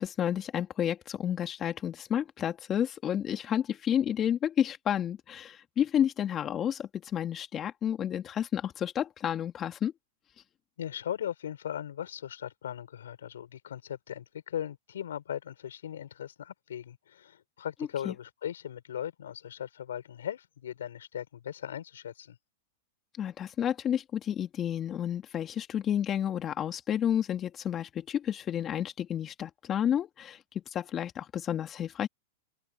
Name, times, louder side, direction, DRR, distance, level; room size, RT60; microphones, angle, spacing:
voice 1, 0.0-9.9 18.1-18.2 23.2-30.4 30.7-32.1, left 9 dB, 30° left, 2.3 m, -30 dB
voice 2, 10.8-22.4, left 10 dB, 80° left, 6.1 m, -38 dB
open air
hypercardioid pair, 120°, 0 cm